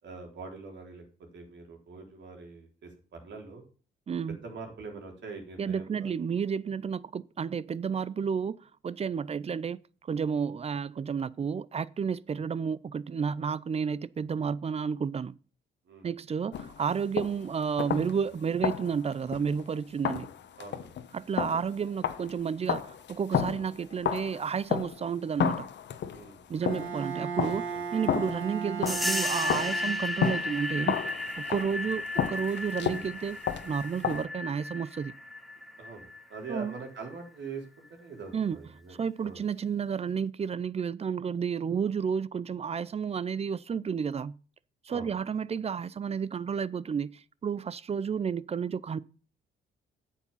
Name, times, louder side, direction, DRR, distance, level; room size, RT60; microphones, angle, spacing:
voice 1, 0.0-1.0 1.3-3.6 4.3-6.1 15.9-16.1 20.6-20.9 26.1-26.6 27.7-27.8 35.8-39.0 39.2-39.4 44.9-45.1, right 4 dB, 65° right, 3.8 m, -43 dB
voice 2, 4.1-4.4 5.6-15.4 16.0-20.3 21.1-25.7 26.5-31.0 31.5-35.1 36.5-36.8 38.3-38.6 39.0-44.4 44.8-49.0, right 6 dB, 30° right, 0.5 m, -31 dB
sound 1, 16.5-17.5 17.8-18.3 18.6-19.7 20.0-25.1 25.4-27.0 27.4-29.2 29.5-34.2, left 8 dB, 65° left, 1.2 m, -32 dB
Bowed string instrument, 26.6-30.3, right 6 dB, 90° right, 1.6 m, -36 dB
sound 2, 28.9-37.1, left 2 dB, ahead, 1.5 m, -34 dB
8.5 x 7.3 x 5.6 m
cardioid pair, 90°, 20 cm